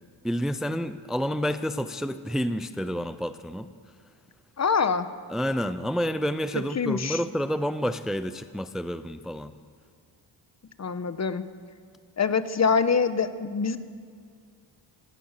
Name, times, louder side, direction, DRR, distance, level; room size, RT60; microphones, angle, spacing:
voice 1, 0.2-3.7 5.3-9.5, equal, ahead, 11 dB, 0.6 m, -29 dB
voice 2, 4.6-5.1 6.8-7.2 10.8-11.4 12.2-13.8, left 5 dB, 35° left, 12 dB, 1.2 m, -24 dB
27.0 x 17.5 x 6.8 m, 2.1 s
cardioid pair, 100°, 45 cm